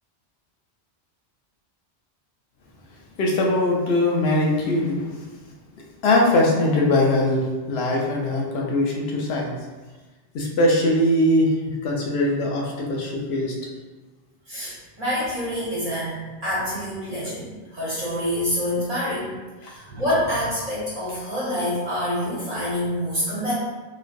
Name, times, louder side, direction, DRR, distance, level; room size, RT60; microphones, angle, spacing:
voice 1, 3.2-5.2 6.0-9.5 10.3-13.5 19.6-19.7, left 1 dB, 70° left, -1 dB, 0.8 m, -21 dB
voice 2, 14.5-19.3 19.6-23.5, left 1 dB, 35° right, -11 dB, 1.3 m, -27 dB
3.0 x 2.4 x 2.5 m, 1.2 s
omnidirectional pair, 1.1 m